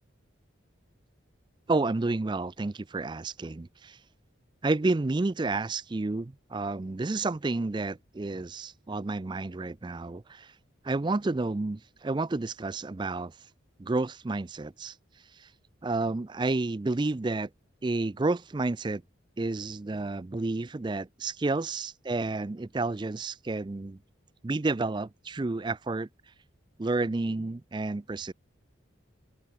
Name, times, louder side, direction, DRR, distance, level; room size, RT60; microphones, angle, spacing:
voice 1, 1.7-4.0 4.6-10.5 10.8-13.3 13.8-14.9 15.4-15.5 15.8-17.5 17.8-19.0 19.4-24.0 24.4-26.1 26.8-28.3, right 3 dB, 20° right, 0.4 m, -30 dB
head